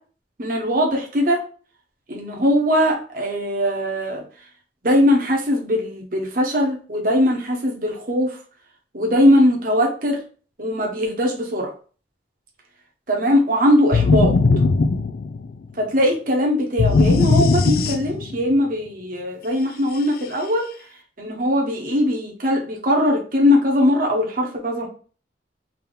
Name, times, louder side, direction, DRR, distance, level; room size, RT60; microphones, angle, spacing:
voice 1, 0.4-1.4 2.1-4.2 4.8-8.4 8.9-10.2 10.6-11.7 13.1-14.3 15.8-20.7 21.2-24.9, left 1 dB, 50° right, 0 dB, 1.0 m, -20 dB
sound 1, 13.9-15.7 16.8-18.4, left 3 dB, 55° left, 0.3 m, -18 dB
3.5 x 2.7 x 3.9 m, 0.40 s
head